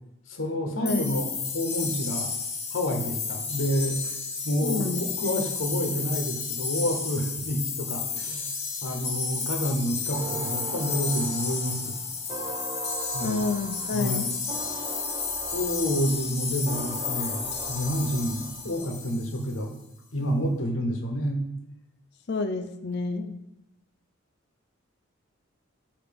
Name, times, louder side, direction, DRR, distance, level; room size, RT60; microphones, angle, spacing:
voice 1, 0.3-2.3 2.7-4.1 4.4-8.5 8.8-11.9 13.1-13.4 13.9-14.3 15.5-19.7 20.1-21.4, equal, 75° left, 4 dB, 1.0 m, -29 dB
voice 2, 0.8-1.1 4.6-5.5 13.2-14.3 22.3-23.4, left 3 dB, 55° left, 7 dB, 0.6 m, -29 dB
sound 1, 0.8-19.5, left 5 dB, 30° left, 1.1 m, -32 dB
sound 2, 10.1-18.8, right 4 dB, 25° right, 0.5 m, -40 dB
6.8 x 2.9 x 5.2 m, 0.84 s
head